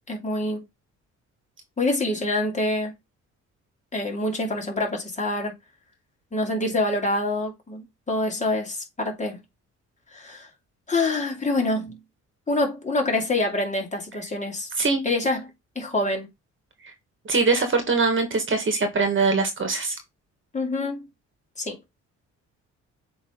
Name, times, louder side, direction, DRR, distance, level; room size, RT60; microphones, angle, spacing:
voice 1, 0.1-0.6 1.8-2.9 3.9-5.5 6.3-9.4 10.1-10.5 10.9-12.0 12.5-14.7 15.0-15.4 15.8-16.3 20.5-21.1 21.6-21.8, left 2 dB, 25° left, 2.6 m, -26 dB
voice 2, 17.2-19.9, right 4 dB, 40° right, 1.8 m, -22 dB
7.7 x 3.3 x 3.8 m
cardioid pair, 90°, 30 cm